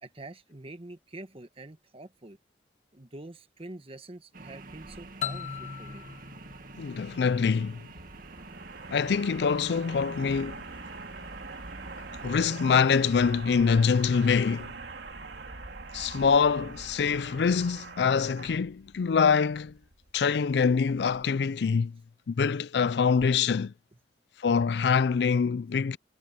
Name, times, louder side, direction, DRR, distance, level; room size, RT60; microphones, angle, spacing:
voice 1, 0.0-2.4 2.9-6.0, right 2 dB, 35° right, 1.4 m, -45 dB
sound 1, 4.3-13.3, right 3 dB, 55° right, 1.9 m, -48 dB
sound 2, 4.7-21.2, right 3 dB, 75° right, 2.7 m, -44 dB
sound 3, 5.2-7.9, left 7 dB, 45° left, 0.8 m, -39 dB
voice 2, 6.8-7.8 8.9-10.6 12.2-14.7 15.9-19.7 20.1-22.0 22.3-23.7 24.4-26.0, left 6 dB, 65° left, 0.4 m, -25 dB
head